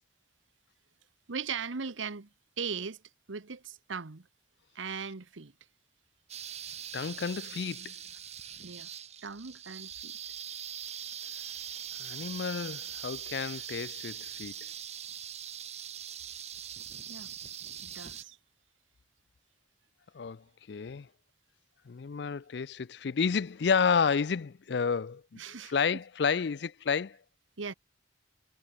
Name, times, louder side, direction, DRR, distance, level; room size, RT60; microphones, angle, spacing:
voice 1, 1.3-2.3 2.6-3.0 3.3-4.3 4.7-5.5 8.6-8.9 9.2-10.2 10.7-11.2 17.1-17.3 17.8-18.4 25.4-25.8 27.6-27.7, right 5 dB, 85° right, 1.1 m, -39 dB
sound 1, 6.3-18.2, right 9 dB, 35° right, 2.4 m, -42 dB
voice 2, 6.9-7.9 12.0-14.5 20.1-21.1 21.9-25.4 25.7-27.2, left 6 dB, 60° left, 0.4 m, -31 dB
head